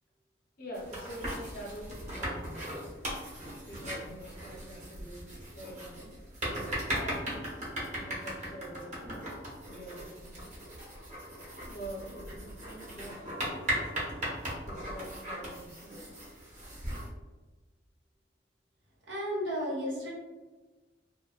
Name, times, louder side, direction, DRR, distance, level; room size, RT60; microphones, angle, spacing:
voice 1, 0.6-2.7 3.6-6.1 6.9-7.5 7.9-9.0 9.6-10.5 11.6-13.5 14.6-16.1, right 1 dB, 50° left, -3 dB, 0.7 m, -45 dB
sound 1, 0.7-17.1, equal, 40° right, 0.8 m, -38 dB
voice 2, 19.1-20.1, equal, 80° right, -5 dB, 0.9 m, -33 dB
2.5 x 2.1 x 2.3 m, 1.2 s
head